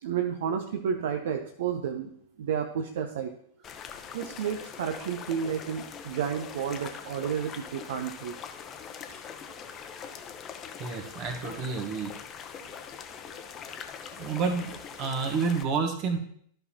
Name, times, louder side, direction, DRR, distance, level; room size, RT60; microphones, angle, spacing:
voice 1, 0.0-2.1 2.4-3.3 4.1-8.4 9.1-9.2, right 8 dB, 60° right, 5 dB, 0.6 m, -31 dB
sound 1, 3.6-15.6, left 7 dB, 30° left, 0.7 m, -43 dB
voice 2, 10.8-12.1 14.2-16.2, right 5 dB, 40° right, 5 dB, 1.3 m, -29 dB
12.5 x 5.5 x 2.9 m, 0.63 s
figure-of-eight pair, 90°, 0 cm